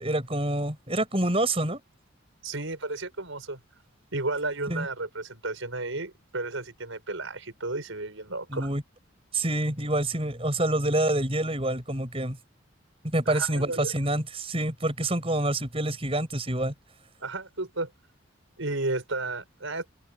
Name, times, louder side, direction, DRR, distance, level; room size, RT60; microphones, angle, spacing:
voice 1, 0.0-1.8 4.7-4.9 8.5-8.8 9.3-12.4 13.0-16.7, right 1 dB, 30° right, 7.1 m, -27 dB
voice 2, 2.4-3.6 4.1-8.7 13.3-13.9 17.2-17.9 18.6-19.9, right 2 dB, 80° right, 5.2 m, -33 dB
open air
head